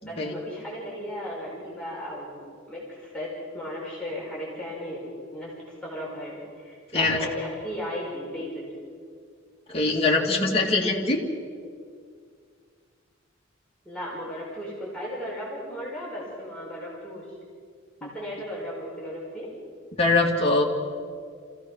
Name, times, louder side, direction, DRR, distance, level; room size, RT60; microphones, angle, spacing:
voice 1, 0.0-3.3 3.5-5.1 5.3-5.5 5.8-8.6 13.9-17.3 18.1-19.5, equal, 5° left, -6 dB, 5.3 m, -35 dB
voice 2, 9.7-11.2 20.0-20.6, left 2 dB, 30° left, -2 dB, 2.5 m, -22 dB
26.5 x 16.0 x 6.3 m, 2.1 s
head